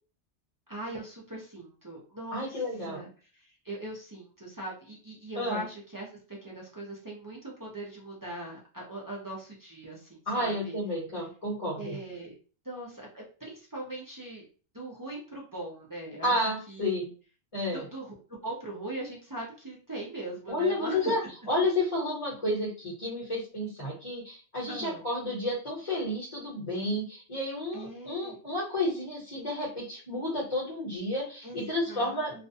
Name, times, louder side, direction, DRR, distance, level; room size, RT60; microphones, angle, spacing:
voice 1, 0.7-10.8 11.7-12.3 12.6-14.4 14.7-17.1 17.7-21.1 24.7-25.0 27.7-28.3 31.4-32.5, right 1 dB, 25° right, -4 dB, 0.5 m, -40 dB
voice 2, 2.3-3.0 5.3-5.6 10.3-12.0 16.2-17.0 17.5-17.8 20.5-21.2 21.5-32.5, left 1 dB, 35° left, -7 dB, 1.0 m, -31 dB
2.4 x 2.2 x 2.6 m, 0.38 s
omnidirectional pair, 1.2 m